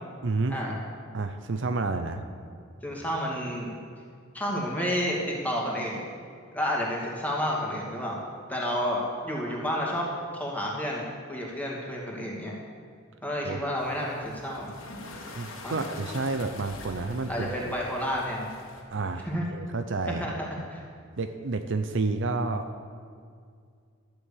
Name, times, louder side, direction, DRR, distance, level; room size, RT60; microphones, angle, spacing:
voice 1, 0.2-0.6 1.1-2.2 13.4-13.6 15.1-17.7 18.9-20.3 21.2-22.7, right 3 dB, 60° right, 8 dB, 0.7 m, -30 dB
voice 2, 2.8-3.7 4.3-6.0 6.5-8.2 8.5-10.1 10.3-12.6 13.2-14.7 15.6-15.8 17.3-18.5 19.2-19.5 20.2-20.8, equal, 10° left, -3 dB, 2.4 m, -30 dB
sound 1, 13.8-18.8, left 2 dB, 70° left, 2.0 m, -44 dB
12.0 x 7.9 x 8.5 m, 2.2 s
head